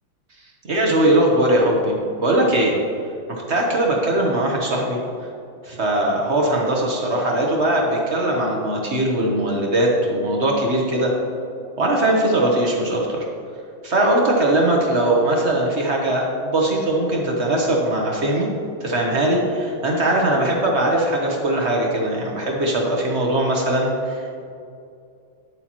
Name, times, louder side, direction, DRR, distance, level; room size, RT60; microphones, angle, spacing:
voice 1, 0.7-2.7 3.3-5.0 5.6-11.1 11.8-13.2 13.8-18.5 18.8-24.4, right 1 dB, 45° right, -1 dB, 1.0 m, -20 dB
9.8 x 8.3 x 3.0 m, 2.4 s
omnidirectional pair, 2.2 m